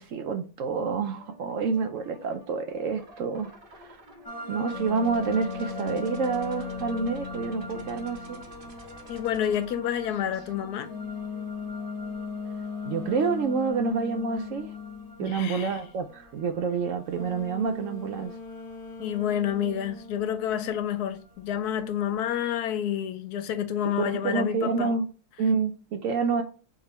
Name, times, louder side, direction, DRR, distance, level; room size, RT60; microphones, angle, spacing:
voice 1, 0.0-3.5 3.8-4.0 4.5-8.4 12.8-14.7 15.2-18.3 24.0-25.1 25.4-26.4, right 5 dB, 70° right, 0.8 m, -28 dB
sound 1, 1.2-10.5, right 1 dB, 40° right, 0.9 m, -50 dB
sound 2, 4.2-22.0, equal, 20° left, 0.6 m, -45 dB
sound 3, 4.7-8.5 10.9-15.2 17.1-20.9, left 6 dB, 45° left, 1.1 m, -38 dB
voice 2, 9.1-10.9 15.2-15.8 19.0-24.9, left 10 dB, 80° left, 1.1 m, -29 dB
3.6 x 3.4 x 4.1 m
omnidirectional pair, 1.7 m